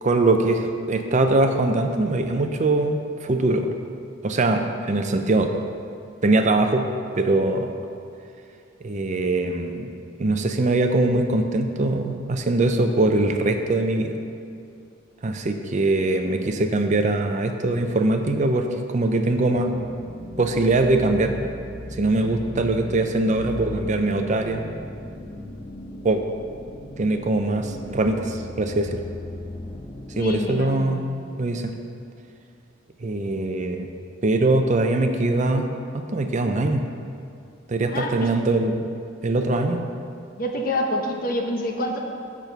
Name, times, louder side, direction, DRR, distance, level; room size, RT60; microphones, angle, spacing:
voice 1, 0.0-3.7 4.2-5.7 6.2-6.9 7.1-7.7 8.8-9.9 10.2-14.2 15.2-18.7 18.9-19.7 20.4-21.5 22.0-24.6 26.0-26.2 27.0-29.0 30.2-31.0 31.4-31.7 33.0-33.9 34.2-35.7 36.1-36.8 37.7-38.8 39.2-39.9, right 2 dB, 40° right, 5 dB, 0.5 m, -22 dB
sound 1, 19.5-30.2, left 1 dB, 25° left, 0.7 m, -37 dB
voice 2, 30.2-31.1 37.9-38.3 40.4-42.0, left 1 dB, 45° left, 2 dB, 0.9 m, -27 dB
6.9 x 6.0 x 6.7 m, 2.5 s
head